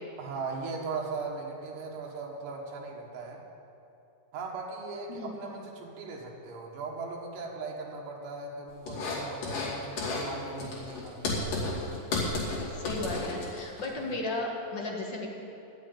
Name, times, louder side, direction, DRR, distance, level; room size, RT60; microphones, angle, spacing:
voice 1, 0.2-3.4 4.3-12.0 13.9-14.1, right 4 dB, 70° right, -1 dB, 3.1 m, -39 dB
sound 1, 8.9-9.7 10.0-10.3 10.6-13.9, left 2 dB, 65° left, 4.1 m, -32 dB
voice 2, 12.7-15.3, left 2 dB, 45° left, -1 dB, 1.5 m, -34 dB
12.0 x 7.8 x 9.0 m, 2.7 s
omnidirectional pair, 4.1 m